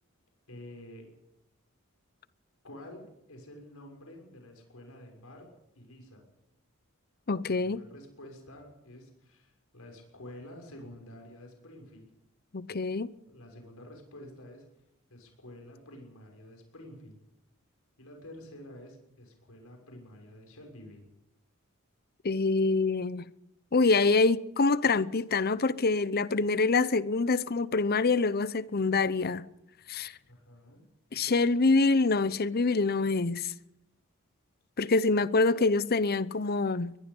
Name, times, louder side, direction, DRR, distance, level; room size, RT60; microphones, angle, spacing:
voice 1, 0.5-1.1 2.6-6.2 7.5-12.1 13.3-14.7 15.1-17.2 18.0-21.0 30.3-30.9, left 1 dB, 80° left, 6.3 m, -49 dB
voice 2, 7.3-7.8 12.5-13.1 22.2-23.3 23.7-29.5 29.9-30.1 31.1-33.5 34.8-37.0, left 3 dB, 45° left, 0.7 m, -25 dB
23.0 x 21.0 x 5.4 m
head